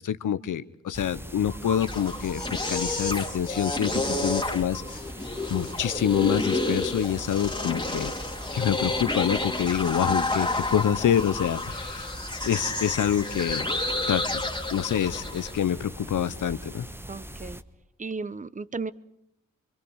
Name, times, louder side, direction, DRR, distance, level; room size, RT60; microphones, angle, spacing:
voice 1, 0.0-3.9 4.2-5.0 5.5-8.1 8.5-12.1 12.4-13.7 14.1-14.4 14.7-16.9, left 9 dB, 70° left, 14 dB, 1.0 m, -26 dB
sound 1, 0.9-17.6, right 1 dB, 5° right, 1.3 m, -41 dB
abstact grainy voicebox, 1.5-15.6, left 2 dB, 15° left, 3.1 m, -30 dB
voice 2, 3.9-4.3 17.1-17.6 18.0-18.9, right 4 dB, 25° right, 17 dB, 1.0 m, -35 dB
28.0 x 22.5 x 6.4 m, 0.77 s
supercardioid pair, 50°, 32 cm